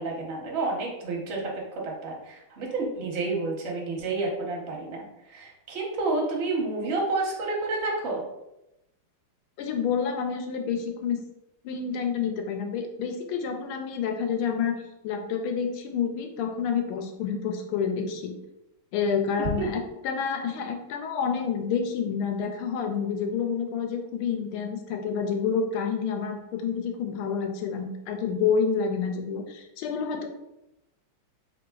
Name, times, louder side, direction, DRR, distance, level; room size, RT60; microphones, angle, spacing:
voice 1, 0.0-8.2, right 3 dB, 50° right, -2 dB, 0.8 m, -30 dB
voice 2, 9.6-11.2 11.6-14.8 15.0-18.3 18.9-30.3, left 6 dB, 90° left, 5 dB, 1.5 m, -28 dB
3.9 x 3.5 x 2.3 m, 0.89 s
omnidirectional pair, 2.3 m